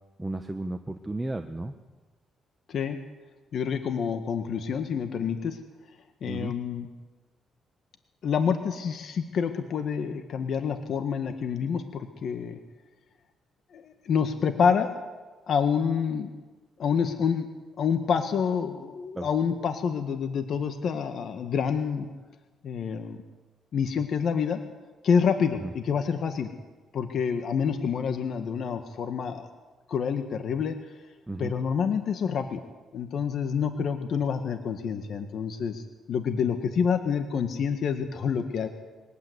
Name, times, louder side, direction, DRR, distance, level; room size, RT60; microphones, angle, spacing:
voice 1, 0.2-1.7 6.2-6.5 19.1-19.3 25.6-25.7 31.3-31.5, right 2 dB, 15° right, 6 dB, 1.4 m, -33 dB
voice 2, 2.7-3.0 3.5-5.6 6.2-6.9 8.2-12.6 13.7-14.9 15.5-16.3 16.8-17.5 17.8-22.1 22.6-23.2 23.7-24.6 25.0-26.5 26.9-29.5 29.9-30.8 31.4-32.6 32.9-38.7, left 6 dB, 60° left, 7 dB, 1.7 m, -27 dB
22.5 x 18.5 x 8.2 m, 1.3 s
cardioid pair, 90°, 0 cm